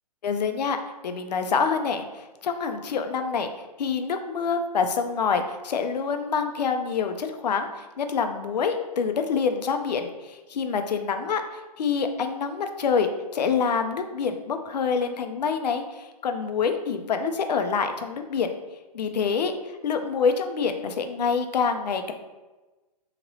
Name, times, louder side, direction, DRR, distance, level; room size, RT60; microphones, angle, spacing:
voice 1, 0.2-0.8 1.0-3.5 3.8-11.4 11.8-18.5 18.9-22.1, left 5 dB, 80° left, 7 dB, 0.5 m, -26 dB
2.9 x 2.7 x 2.9 m, 1.1 s
hypercardioid pair, 145°, 21 cm